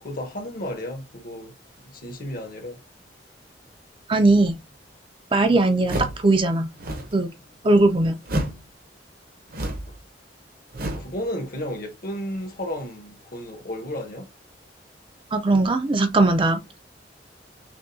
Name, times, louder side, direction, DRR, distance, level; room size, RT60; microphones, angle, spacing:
voice 1, 0.0-2.8 9.9-10.0 11.0-14.3, left 1 dB, 55° left, 1.1 m, -33 dB
voice 2, 4.1-4.6 5.3-6.7 7.1-7.3 7.6-8.2 15.3-16.6, right 2 dB, 30° right, 0.5 m, -19 dB
sound 1, 5.8-6.3 6.7-7.2 8.2-8.7 9.5-10.0 10.7-11.2, right 1 dB, 55° right, 0.9 m, -29 dB
6.0 x 2.3 x 2.6 m
head